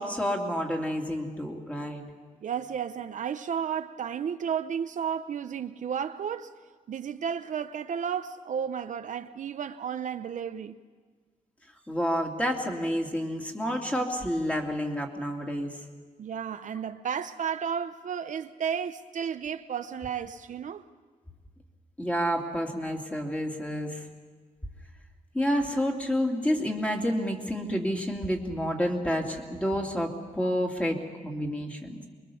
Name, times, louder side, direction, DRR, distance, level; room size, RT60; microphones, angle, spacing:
voice 1, 0.0-2.0 11.9-15.8 22.0-24.1 25.3-31.0 31.2-32.0, equal, 10° left, 2.5 m, -29 dB
voice 2, 2.4-6.5 6.9-10.8 16.2-20.8, right 7 dB, 60° right, 0.7 m, -33 dB
24.0 x 22.5 x 7.0 m
wide cardioid pair, 140°, 14 cm